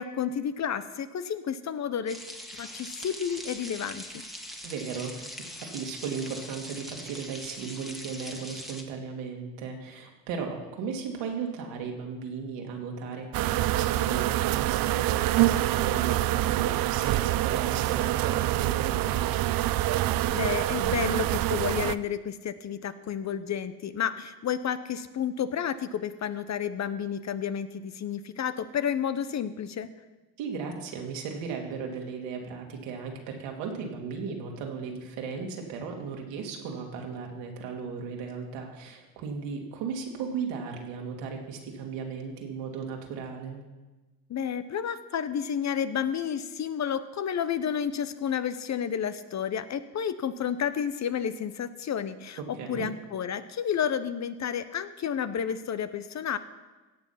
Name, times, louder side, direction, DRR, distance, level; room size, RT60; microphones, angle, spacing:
voice 1, 0.0-2.2 2.6-4.2 20.3-29.9 44.3-52.4 52.7-56.4, left 8 dB, 35° left, 12 dB, 0.8 m, -31 dB
sound 1, 2.1-8.8, equal, ahead, 1.9 m, -42 dB
voice 2, 4.6-5.3 5.7-19.5 30.4-43.6 52.4-52.9, right 5 dB, 70° right, 1 dB, 2.7 m, -36 dB
sound 2, 13.3-22.0, right 15 dB, 50° right, 0.5 m, -26 dB
16.5 x 7.2 x 5.8 m, 1.2 s
supercardioid pair, 80°, 46 cm